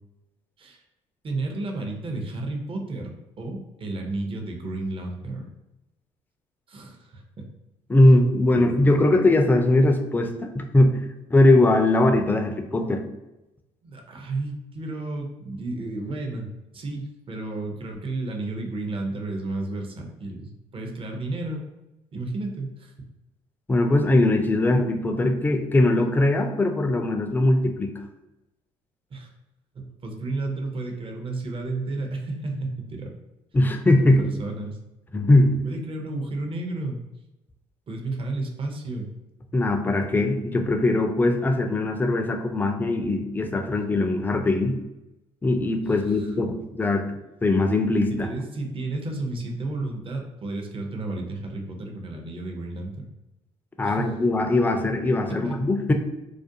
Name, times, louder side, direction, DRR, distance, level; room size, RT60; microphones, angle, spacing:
voice 1, 1.2-5.5 6.7-7.5 8.5-9.2 13.8-16.5 16.7-21.6 22.1-23.1 29.1-29.3 29.7-33.1 34.0-34.8 35.6-37.0 37.9-39.1 45.8-46.3 48.1-53.1 53.8-54.2 55.3-55.7, right 2 dB, 40° right, 2 dB, 0.6 m, -32 dB
voice 2, 7.9-11.0 11.3-13.0 23.7-27.9 33.5-34.2 35.1-35.6 39.5-44.8 45.4-47.1 47.4-48.3 53.8-55.9, left 2 dB, 15° left, 5 dB, 0.3 m, -20 dB
2.4 x 2.1 x 2.6 m, 0.95 s
supercardioid pair, 70°, 14 cm